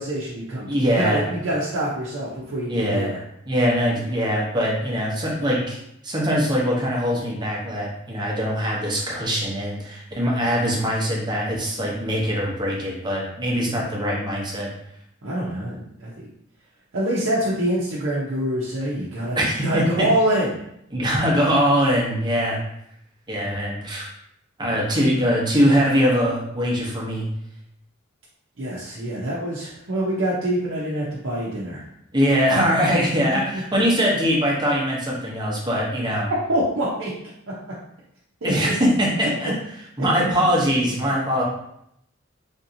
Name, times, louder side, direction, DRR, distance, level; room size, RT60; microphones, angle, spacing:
voice 1, 0.0-3.2 15.2-16.1 16.9-20.6 28.6-31.8 33.7-33.8 36.5-37.1 38.4-38.7, right 1 dB, 75° right, -6 dB, 0.7 m, -25 dB
voice 2, 0.7-1.3 2.7-3.1 3.5-5.8 6.0-14.7 19.3-20.1 20.9-22.6 23.3-24.1 24.6-27.3 32.1-36.3 38.4-39.5 40.0-41.4, equal, 20° right, -4 dB, 0.9 m, -22 dB
3.5 x 2.7 x 2.7 m, 0.75 s
head